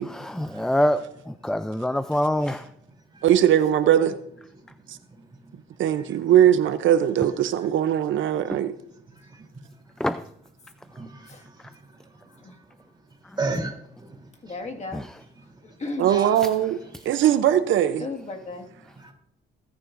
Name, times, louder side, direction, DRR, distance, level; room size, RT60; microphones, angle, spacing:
voice 1, 0.1-2.6 8.5-8.6 10.0-10.2 14.9-15.1 16.4-16.5, left 1 dB, 5° left, 0.4 m, -25 dB
voice 2, 3.2-4.1 5.8-8.7 16.0-16.8 17.1-18.1, right 10 dB, 75° right, 0.7 m, -20 dB
voice 3, 3.8-4.2 11.3-11.4 12.4-12.5 14.4-15.0 15.8-16.1 18.0-18.7, left 3 dB, 35° left, 1.9 m, -35 dB
voice 4, 10.9-11.3 13.4-13.7 14.0-14.1 16.1-16.3 19.0-19.1, right 3 dB, 20° right, 3.3 m, -32 dB
20.0 x 9.7 x 2.6 m
cardioid pair, 90°, 20 cm